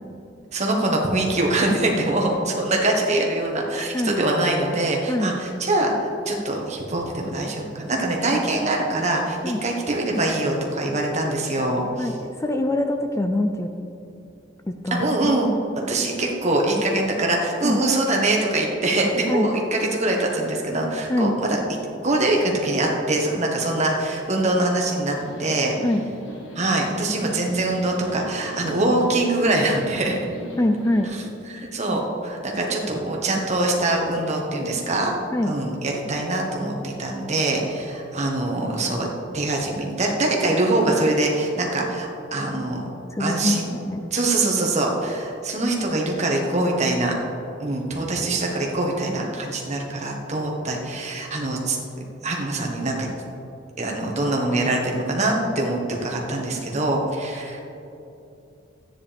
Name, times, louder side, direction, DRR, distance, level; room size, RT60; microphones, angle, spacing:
voice 1, 0.5-12.1 14.9-15.5 15.8-21.6 22.0-25.7 26.5-30.2 31.5-35.1 35.5-39.1 39.3-42.8 43.2-43.7 44.1-47.1 47.6-51.8 52.2-53.1 53.8-57.6, right 2 dB, 35° right, 0 dB, 1.5 m, -23 dB
voice 2, 12.0-13.7 14.7-15.4 17.6-17.8 19.3-19.5 21.1-21.4 25.8-26.0 30.6-31.1 35.3-35.6 43.1-44.0, left 1 dB, 15° left, 5 dB, 0.4 m, -24 dB
sound 1, 25.1-31.0, equal, 80° left, 1.7 m, -40 dB
13.5 x 9.6 x 3.5 m, 2.9 s
head